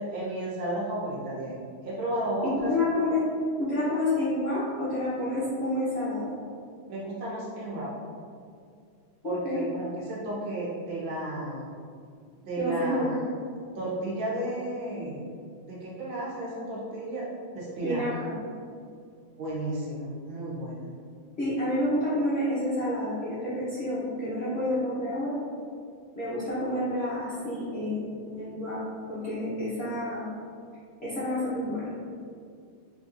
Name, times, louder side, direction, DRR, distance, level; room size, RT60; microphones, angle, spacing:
voice 1, 0.0-2.7 6.9-7.9 9.2-11.7 12.4-13.2 13.8-15.3 15.6-17.3 17.5-18.1 19.4-20.9, right 1 dB, 70° right, -6 dB, 1.6 m, -33 dB
voice 2, 2.4-3.3 3.6-6.3 9.2-9.6 12.6-13.1 17.8-18.3 21.4-25.4 26.2-28.8 29.1-30.3 31.0-31.8, left 1 dB, 55° left, -11 dB, 0.7 m, -29 dB
4.0 x 3.4 x 2.5 m, 2.3 s
omnidirectional pair, 2.3 m